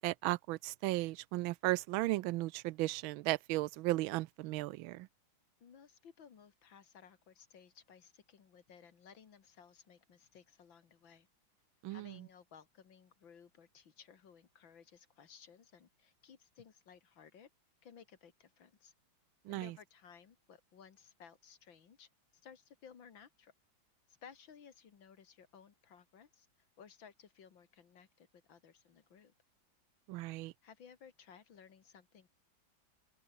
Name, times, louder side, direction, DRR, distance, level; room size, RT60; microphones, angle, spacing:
voice 1, 0.0-5.1 11.8-12.1 19.5-19.7 30.1-30.5, right 18 dB, 90° right, 1.4 m, -35 dB
voice 2, 5.6-11.3 11.9-17.5 17.8-18.9 19.5-23.5 24.1-29.3 30.6-32.3, left 7 dB, 75° left, 2.7 m, -59 dB
open air
omnidirectional pair, 2.1 m